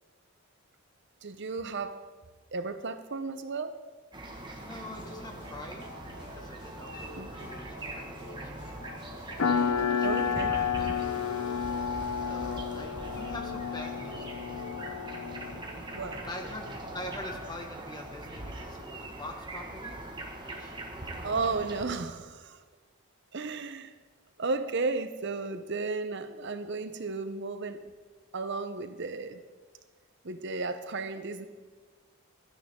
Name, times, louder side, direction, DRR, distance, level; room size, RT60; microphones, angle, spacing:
voice 1, 1.2-2.0 2.5-3.8 7.1-7.3 10.0-10.6 15.9-16.3 21.2-22.6 23.3-23.9 24.4-27.8 28.3-29.4 30.2-31.5, right 3 dB, 50° right, 0.7 m, -34 dB
sound 1, 4.1-21.9, right 1 dB, 20° right, 1.5 m, -42 dB
voice 2, 4.6-5.9 6.2-9.0 9.5-10.7 12.2-14.3 16.2-20.0 20.4-21.2 21.5-21.7, left 1 dB, 20° left, 1.6 m, -44 dB
sound 2, 4.9-17.6, left 1 dB, 50° left, 3.8 m, -48 dB
sound 3, 9.4-15.6, left 7 dB, 65° left, 0.8 m, -31 dB
16.5 x 12.5 x 3.7 m
head